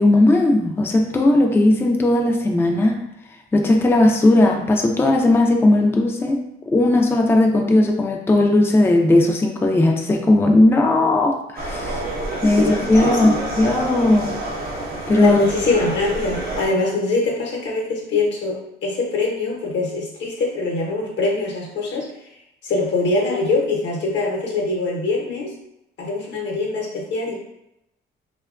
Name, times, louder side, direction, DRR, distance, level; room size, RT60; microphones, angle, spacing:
voice 1, 0.0-3.0 3.5-6.4 6.7-12.0 12.4-14.3 15.1-15.4, left 2 dB, 10° left, 2 dB, 0.3 m, -17 dB
sound 1, 11.6-16.7, right 2 dB, 50° right, 0.6 m, -27 dB
voice 2, 12.6-13.4 15.2-22.1 22.6-25.5 26.0-27.3, left 3 dB, 65° left, -1 dB, 0.8 m, -23 dB
2.8 x 2.2 x 2.4 m, 0.84 s
cardioid pair, 90°, 20 cm